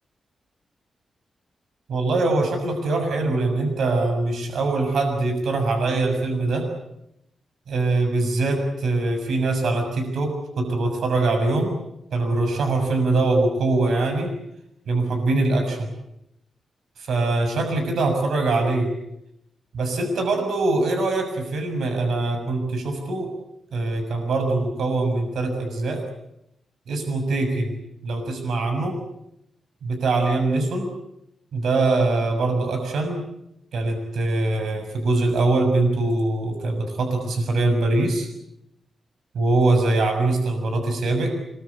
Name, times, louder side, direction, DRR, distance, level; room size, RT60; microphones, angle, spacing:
voice 1, 1.9-6.6 7.7-11.8 12.1-14.3 14.9-15.9 17.0-18.9 19.7-23.3 23.7-26.0 26.9-28.9 29.8-30.9 31.5-33.2 33.7-38.3 39.3-41.3, right 2 dB, 75° right, 5 dB, 6.6 m, -23 dB
26.0 x 23.5 x 8.2 m, 0.80 s
wide cardioid pair, 125°, 0 cm